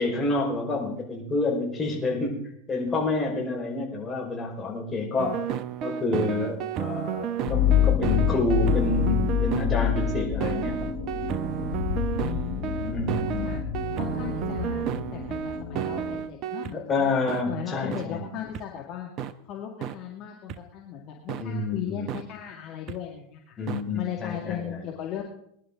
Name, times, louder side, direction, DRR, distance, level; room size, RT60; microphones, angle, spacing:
voice 1, 0.0-2.4 2.7-5.4 5.8-10.9 11.2-11.4 12.9-13.6 16.7-18.3 21.4-22.1 23.6-24.8, left 2 dB, 20° left, -1 dB, 4.8 m, -28 dB
sound 1, 5.2-16.7 17.3-17.4 17.9-18.0 18.5-18.6 19.2-19.3 19.8-19.9 20.5-20.6 21.3-21.4 22.1-22.2 22.9-23.0 23.7-23.8, right 10 dB, 40° right, 0.8 m, -32 dB
sound 2, 7.4-16.2, left 10 dB, 75° left, 3.1 m, -27 dB
voice 2, 12.2-13.6 13.9-14.8 15.1-17.1 17.5-19.1 19.4-23.6 23.9-25.2, left 10 dB, 45° left, 0 dB, 2.1 m, -37 dB
21.0 x 11.0 x 3.8 m, 0.70 s
figure-of-eight pair, 85°, 0 cm